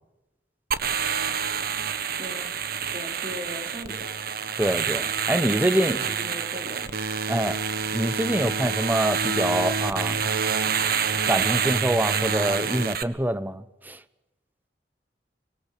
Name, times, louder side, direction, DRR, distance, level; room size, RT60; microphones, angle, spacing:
sound 1, 0.7-13.0, right 6 dB, 60° right, 1.5 m, -27 dB
voice 1, 2.2-2.5 2.9-4.1 5.3-7.0, equal, 35° right, 1 dB, 4.1 m, -38 dB
voice 2, 4.6-6.0 7.3-7.6 7.9-10.2 11.3-14.0, right 1 dB, 10° right, 13 dB, 1.0 m, -25 dB
24.5 x 21.5 x 8.5 m, 1.0 s
head